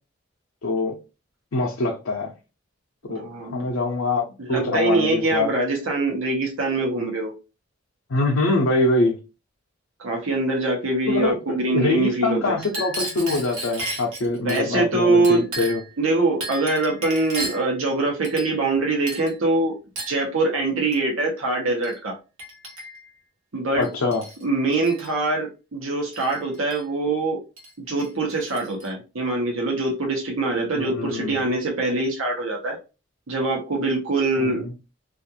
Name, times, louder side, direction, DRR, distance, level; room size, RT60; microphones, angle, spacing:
voice 1, 0.6-1.0 1.5-2.3 3.1-5.5 8.1-9.2 11.1-15.8 23.7-24.2 30.7-31.4 34.4-34.7, left 2 dB, 80° left, 0.6 m, -24 dB
voice 2, 3.1-3.7 4.4-7.3 10.0-12.6 14.4-15.5 16.0-19.7 20.1-22.1 23.5-23.9 24.4-27.4 27.8-32.8 33.3-34.6, right 2 dB, 85° right, 0.8 m, -23 dB
Chink clink, 12.6-14.6 15.2-15.9 16.4-17.7 18.2-18.8 19.1-19.4 20.0-20.2 20.9-21.1 21.8-22.0 22.4-23.1 23.8-24.4 24.7-25.1 26.1-26.8 27.6-27.7 28.0-28.9, right 1 dB, 65° right, 1.1 m, -34 dB
2.5 x 2.4 x 2.7 m
head